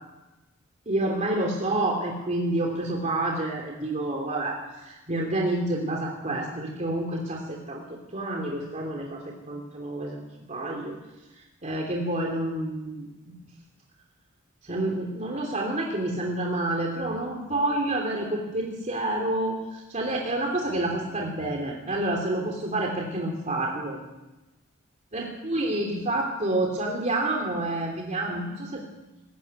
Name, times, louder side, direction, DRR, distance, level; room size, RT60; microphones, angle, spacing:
voice 1, 0.9-7.8 8.1-10.2 10.5-11.0 11.6-13.4 14.6-24.0 25.1-28.8, right 1 dB, 35° right, 0 dB, 2.9 m, -28 dB
20.5 x 16.0 x 9.6 m, 1.1 s
head